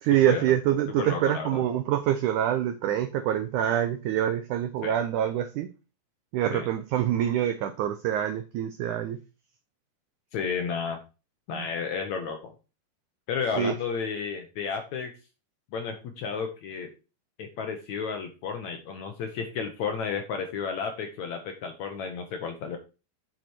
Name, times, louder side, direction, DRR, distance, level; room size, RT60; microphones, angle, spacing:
voice 1, 0.0-5.7 6.3-9.2 11.5-11.7 13.6-13.7, right 11 dB, 90° right, 9 dB, 1.7 m, -26 dB
voice 2, 1.0-1.6 4.8-5.0 6.5-6.7 10.3-11.0 11.5-12.5 13.3-15.1 15.7-16.9 17.4-22.8, left 6 dB, 70° left, 5 dB, 1.8 m, -32 dB
7.9 x 6.9 x 4.5 m, 0.31 s
omnidirectional pair, 4.4 m